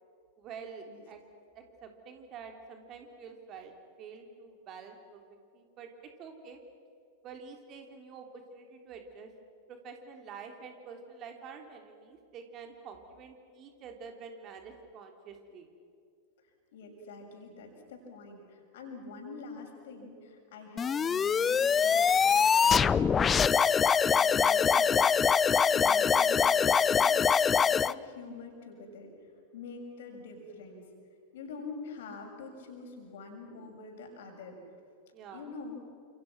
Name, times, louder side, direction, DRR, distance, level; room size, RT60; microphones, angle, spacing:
voice 1, 0.4-1.2 1.6-3.7 4.0-5.2 5.5-5.9 6.2-6.6 7.2-9.3 9.7-15.7 23.2-23.4 25.7-26.1 35.1-35.5, right 5 dB, 35° right, 4 dB, 3.5 m, -47 dB
voice 2, 16.7-23.4 24.2-25.1 25.5-27.3 27.6-29.1 29.5-30.8 31.3-34.6 35.3-35.8, left 3 dB, 55° left, 2 dB, 6.8 m, -45 dB
sound 1, 20.8-27.9, left 6 dB, 20° left, 0.5 m, -24 dB
29.5 x 28.0 x 6.2 m, 2.4 s
figure-of-eight pair, 90°, 0 cm